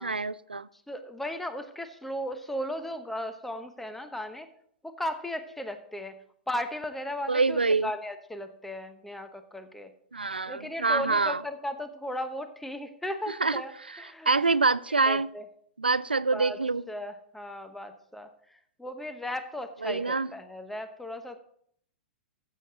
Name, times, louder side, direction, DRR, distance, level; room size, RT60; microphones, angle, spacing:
voice 1, 0.0-0.7 7.3-7.9 10.1-11.4 13.4-13.6 14.3-15.3 15.8-16.8 19.8-20.3, right 4 dB, 90° right, 0.4 m, -25 dB
voice 2, 0.7-4.5 4.8-6.2 6.5-9.9 10.5-14.3 15.0-15.5 16.3-16.6 16.9-21.4, left 1 dB, 5° left, 1.0 m, -36 dB
14.5 x 7.5 x 3.8 m
figure-of-eight pair, 105°, 5 cm